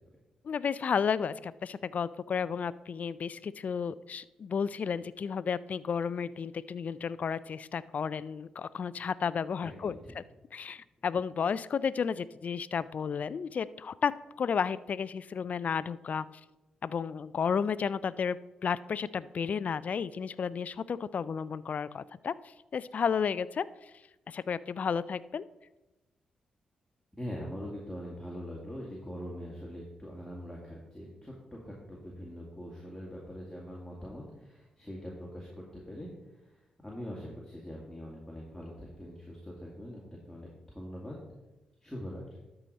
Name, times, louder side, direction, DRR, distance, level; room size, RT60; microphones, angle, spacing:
voice 1, 0.4-10.2 10.5-14.1 14.4-16.3 16.8-18.4 18.6-22.3 22.7-23.6 24.3-25.5, left 6 dB, 55° left, 18 dB, 0.3 m, -32 dB
voice 2, 9.6-10.1 27.2-36.1 36.8-41.2 41.8-42.2, equal, 5° left, -4 dB, 2.3 m, -43 dB
12.5 x 4.9 x 4.1 m, 1.0 s
hypercardioid pair, 40°, 3 cm